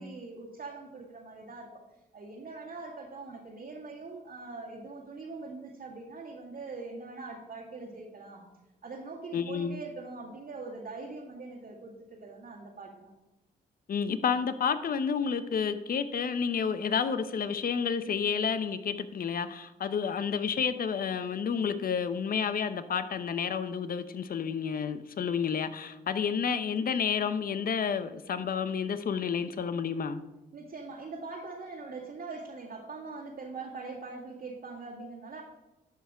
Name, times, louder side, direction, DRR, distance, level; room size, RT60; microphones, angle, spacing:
voice 1, 0.0-1.8 2.1-8.5 8.8-13.1 30.5-35.4, right 3 dB, 65° right, -5 dB, 2.0 m, -42 dB
voice 2, 9.3-9.8 13.9-30.2, left 6 dB, 55° left, 12 dB, 0.8 m, -30 dB
11.0 x 5.8 x 4.9 m, 1.0 s
cardioid pair, 80°, 18 cm